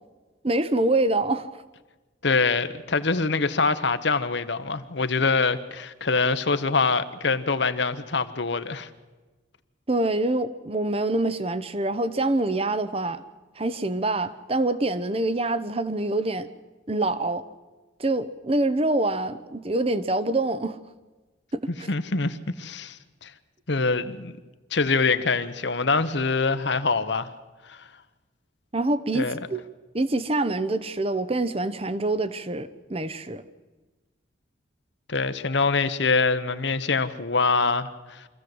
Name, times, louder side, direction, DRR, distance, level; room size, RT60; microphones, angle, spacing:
voice 1, 0.4-1.6 9.9-13.2 13.6-16.5 16.9-17.5 18.0-20.8 21.5-21.9 28.7-29.6 29.9-33.4, right 2 dB, 30° right, 0.8 m, -25 dB
voice 2, 2.2-8.9 21.9-23.3 23.7-24.4 24.7-27.3 27.6-27.9 29.1-29.4 35.1-38.3, left 4 dB, 65° left, 1.0 m, -24 dB
25.0 x 15.0 x 7.9 m
head